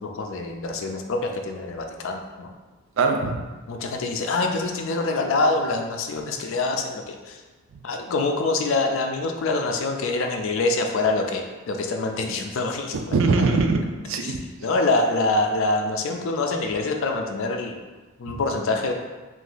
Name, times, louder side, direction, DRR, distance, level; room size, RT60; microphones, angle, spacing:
voice 1, 0.0-2.5 3.7-7.4 7.8-13.1 13.5-13.6 14.2-14.4 14.6-17.8 18.2-18.9, left 3 dB, 60° left, 3 dB, 0.4 m, -25 dB
voice 2, 3.0-3.4 12.9-14.4 18.3-18.4, right 3 dB, 60° right, 4 dB, 0.4 m, -22 dB
2.9 x 2.5 x 3.9 m, 1.3 s
head